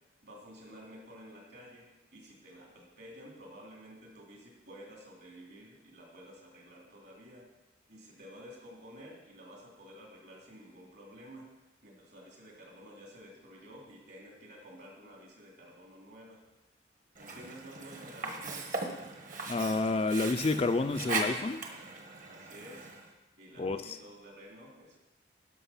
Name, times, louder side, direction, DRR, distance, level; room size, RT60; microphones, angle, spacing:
voice 1, 0.2-7.5 7.9-11.5 11.8-16.4 17.2-18.7 22.3-22.9 23.4-25.0, equal, 60° right, -2 dB, 2.9 m, -51 dB
Sink (filling or washing), 17.1-23.1, right 3 dB, 45° right, 1.2 m, -39 dB
voice 2, 19.5-21.6 23.6-24.0, left 3 dB, 30° left, 9 dB, 0.4 m, -29 dB
11.5 x 6.1 x 5.6 m, 1.0 s
head